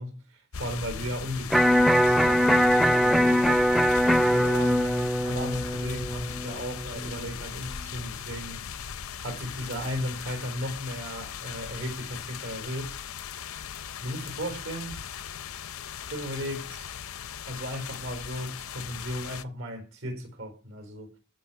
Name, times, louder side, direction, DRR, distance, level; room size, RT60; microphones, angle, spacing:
voice 1, 0.0-3.7 4.2-8.7 9.2-13.0 14.0-15.0 16.1-16.9 17.5-21.1, equal, 70° right, 4.4 m, -36 dB
sound 1, 0.5-19.4, left 8 dB, 85° left, 0.6 m, -39 dB
Electric guitar, 1.5-7.6, equal, ahead, 0.5 m, -22 dB
15.0 x 6.3 x 6.0 m
head